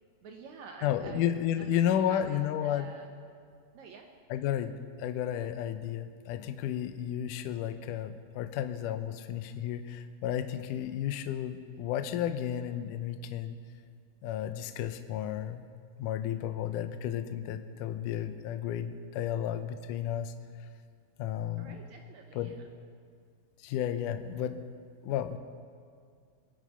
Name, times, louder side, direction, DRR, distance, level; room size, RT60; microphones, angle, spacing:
voice 1, 0.2-1.3 1.6-3.1 3.7-4.1 21.5-22.7, right 5 dB, 80° right, 2 dB, 1.6 m, -48 dB
voice 2, 0.8-2.9 4.3-13.6 14.2-15.6 16.0-20.3 21.2-21.8 22.3-22.6 23.6-24.6 25.0-25.4, left 10 dB, 80° left, 9 dB, 1.9 m, -32 dB
23.0 x 10.0 x 5.6 m, 2.1 s
omnidirectional pair, 4.6 m